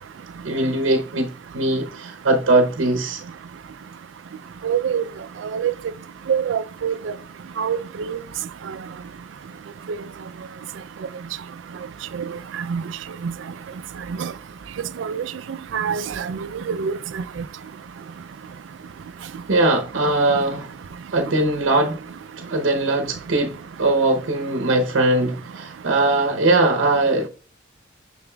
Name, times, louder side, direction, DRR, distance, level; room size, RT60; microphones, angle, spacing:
voice 1, 0.4-3.2 19.5-20.7 21.1-22.0 22.4-27.3, right 2 dB, 90° right, 0.7 m, -20 dB
voice 2, 4.6-5.0 5.4-5.7 6.3-7.1 7.6-8.2 12.2-12.4 12.7-12.8 13.2-13.3 14.2-14.3 15.0-15.2 15.7-16.4 16.7-17.2, right 7 dB, 70° right, 0.4 m, -25 dB
6.9 x 6.1 x 2.3 m
head